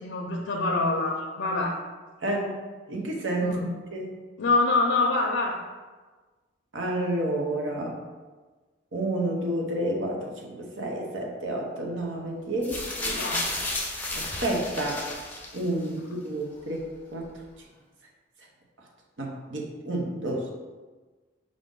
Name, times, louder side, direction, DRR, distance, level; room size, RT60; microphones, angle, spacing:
voice 1, 0.0-1.8 3.4-3.6 4.4-5.6 13.2-13.5, left 3 dB, 80° left, 0 dB, 0.5 m, -25 dB
voice 2, 2.2-2.6 2.9-3.6 3.9-4.2 6.7-8.0 8.9-13.2 14.2-15.0 15.5-16.0 16.2-17.3 19.2-20.5, right 1 dB, 80° right, 0 dB, 0.8 m, -30 dB
sound 1, 12.6-15.9 16.8-16.9, left 2 dB, 10° left, 0.5 m, -32 dB
5.0 x 2.5 x 3.7 m, 1.3 s
head